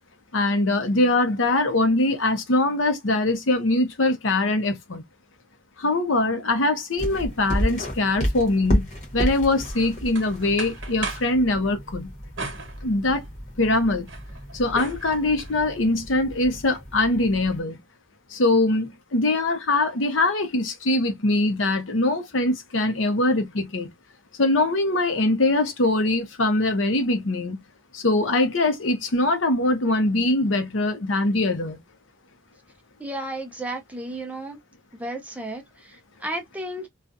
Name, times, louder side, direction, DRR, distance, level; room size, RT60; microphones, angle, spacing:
voice 1, 0.3-5.0 5.8-8.9 9.1-12.1 12.8-13.2 13.6-14.1 14.5-17.8 18.3-23.9 24.4-27.6 27.9-31.8, left 2 dB, 85° left, 0.8 m, -22 dB
sound 1, 7.0-17.6, equal, 35° left, 1.0 m, -31 dB
sound 2, 9.6-11.4 12.4-13.4 13.8-15.5, right 3 dB, 75° right, 1.0 m, -37 dB
voice 2, 33.0-34.6 34.9-36.9, right 1 dB, 5° right, 0.5 m, -33 dB
2.4 x 2.3 x 2.5 m
head